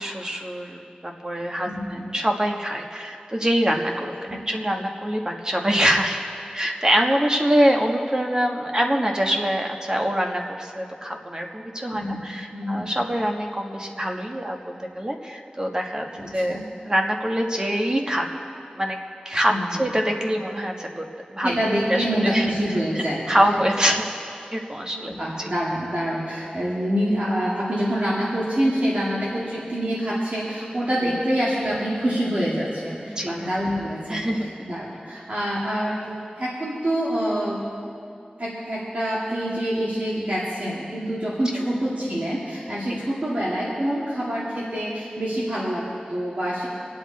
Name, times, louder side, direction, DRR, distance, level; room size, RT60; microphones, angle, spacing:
voice 1, 0.0-4.1 4.5-6.2 6.5-16.6 16.8-18.3 18.8-19.0 19.2-19.5 19.8-21.0 21.3-21.6 21.9-22.5 22.9-24.1 24.5-25.5 28.9-29.0 31.0-31.1 33.1-33.5 34.1-34.5 41.5-41.6 42.9-43.0, equal, 25° right, 1 dB, 1.5 m, -24 dB
voice 2, 1.6-2.0 4.3-4.4 11.9-12.2 12.5-12.9 16.2-16.6 19.5-19.8 21.4-23.3 24.8-37.9 38.4-46.7, equal, 60° right, -7 dB, 2.5 m, -26 dB
26.0 x 8.7 x 4.2 m, 2.5 s
wide cardioid pair, 65°, 3 cm